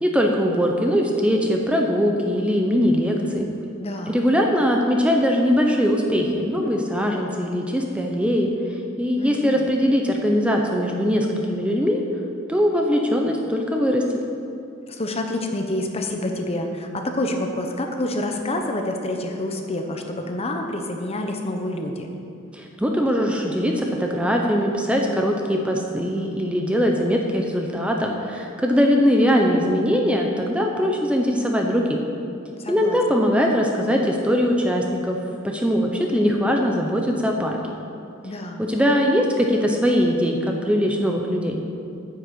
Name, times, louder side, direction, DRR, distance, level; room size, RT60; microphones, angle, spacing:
voice 1, 0.0-3.5 4.1-8.5 9.0-12.0 12.5-14.0 22.5-32.0 32.7-35.2 35.4-37.6 38.6-41.6, equal, 5° right, 1 dB, 0.7 m, -21 dB
voice 2, 3.8-4.2 9.2-9.7 14.9-22.1 32.6-33.0 38.2-38.6, left 1 dB, 30° left, 4 dB, 0.9 m, -28 dB
9.5 x 6.5 x 7.5 m, 2.7 s
head